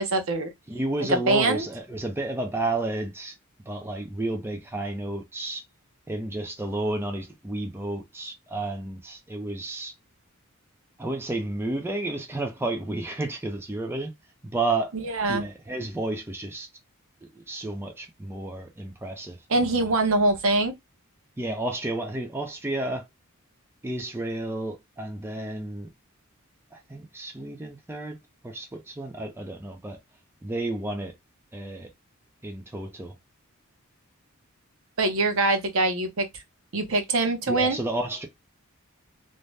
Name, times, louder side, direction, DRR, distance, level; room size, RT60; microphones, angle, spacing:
voice 1, 0.0-0.5 1.0-1.7 14.9-15.5 19.5-20.7 35.0-36.3 36.7-37.8, right 2 dB, 65° right, 0.7 m, -23 dB
voice 2, 0.7-3.3 3.7-5.6 6.1-9.9 11.0-14.1 14.5-14.9 15.3-16.7 17.3-19.9 21.4-23.1 23.8-25.9 26.7-28.2 28.4-30.0 30.4-31.1 31.5-31.9 32.4-33.1 37.5-38.3, right 2 dB, 10° right, 0.5 m, -31 dB
2.6 x 2.1 x 3.2 m
head